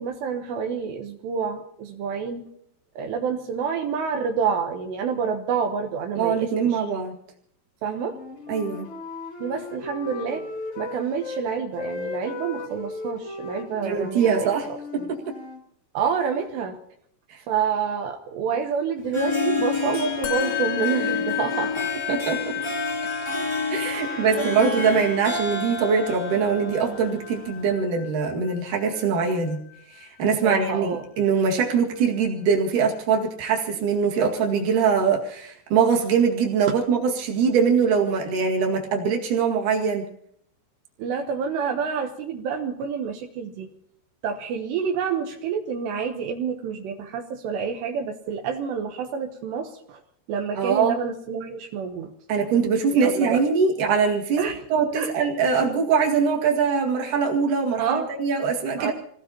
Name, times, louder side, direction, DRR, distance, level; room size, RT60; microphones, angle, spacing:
voice 1, 0.0-2.5 3.0-6.8 7.8-8.2 9.4-10.5 10.8-14.8 15.9-16.8 17.5-21.9 23.8-25.0 30.2-31.0 41.0-43.7 44.2-50.0 50.3-52.1 52.9-53.4 54.4-54.6 55.0-55.1 57.8-58.1 58.8-58.9, right 6 dB, 80° right, 3 dB, 3.1 m, -28 dB
voice 2, 6.2-7.2 8.5-8.9 13.8-14.7 14.9-15.2 17.3-17.4 22.1-22.5 23.7-29.6 29.9-40.0 50.5-51.0 52.3-54.4 54.7-58.9, right 6 dB, 55° right, -1 dB, 3.1 m, -22 dB
Wind instrument woodwind instrument, 8.0-11.4 11.7-15.6, left 3 dB, 60° left, 1.3 m, -36 dB
Harp, 19.0-27.7, left 3 dB, 10° left, 1.5 m, -29 dB
Musical instrument, 20.2-29.8, left 18 dB, 90° left, 3.4 m, -33 dB
27.5 x 18.0 x 2.9 m, 0.70 s
omnidirectional pair, 5.0 m